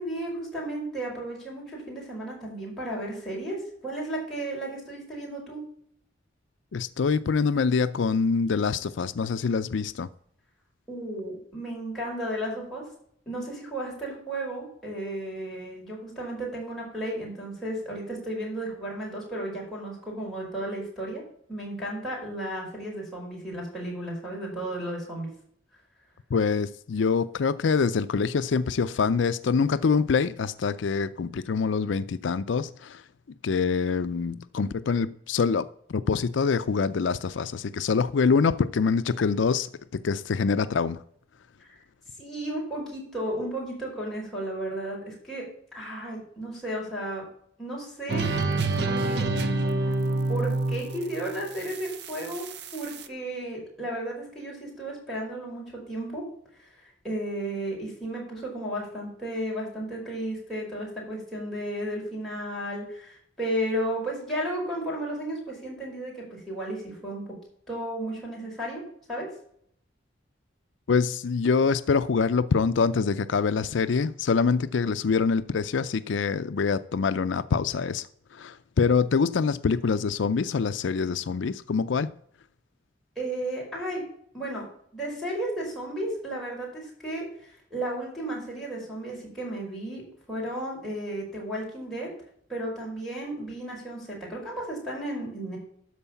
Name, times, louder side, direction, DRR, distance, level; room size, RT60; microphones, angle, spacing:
voice 1, 0.0-5.6 10.9-12.8 13.2-21.2 21.5-25.3 41.6-41.8 42.2-45.4 45.7-47.2 47.6-48.3 48.8-49.4 49.8-49.9 50.3-52.4 52.7-56.2 56.6-67.3 67.7-68.8 69.1-69.3 83.1-84.0 84.3-84.7 84.9-92.1 92.5-95.6, right 1 dB, ahead, 5.0 m, -34 dB
voice 2, 6.7-10.1 26.3-33.0 33.4-41.0 70.9-78.1 78.3-82.1, left 5 dB, 75° left, 0.4 m, -25 dB
sound 1, 48.1-53.0, right 2 dB, 60° right, 0.8 m, -28 dB
12.5 x 4.7 x 7.0 m
head